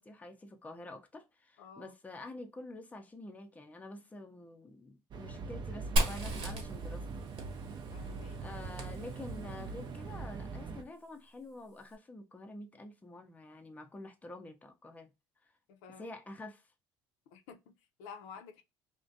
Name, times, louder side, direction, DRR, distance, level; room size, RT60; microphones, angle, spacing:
voice 1, 0.0-7.3 8.4-15.1 15.4-15.5 16.0-16.6, left 2 dB, 15° left, 0.5 m, -48 dB
voice 2, 1.6-1.9 7.9-8.4 15.7-16.1 17.3-18.6, left 6 dB, 85° left, 0.5 m, -51 dB
sound 1, 5.1-10.8, right 4 dB, 40° right, 0.5 m, -42 dB
Fire, 6.0-9.6, right 1 dB, 55° right, 1.1 m, -36 dB
2.4 x 2.1 x 2.6 m
supercardioid pair, 95°, 11 cm